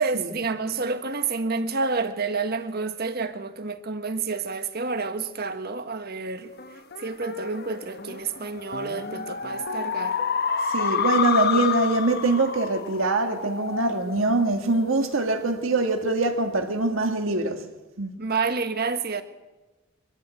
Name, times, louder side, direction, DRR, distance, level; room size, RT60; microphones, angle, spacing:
voice 1, 0.0-6.5 7.0-10.2 18.2-19.2, right 4 dB, 50° right, 1.5 m, -29 dB
sound 1, 6.6-15.4, left 6 dB, 50° left, 1.1 m, -29 dB
voice 2, 10.6-17.7 18.0-18.1, right 2 dB, 75° right, 1.7 m, -24 dB
24.0 x 13.5 x 8.9 m
head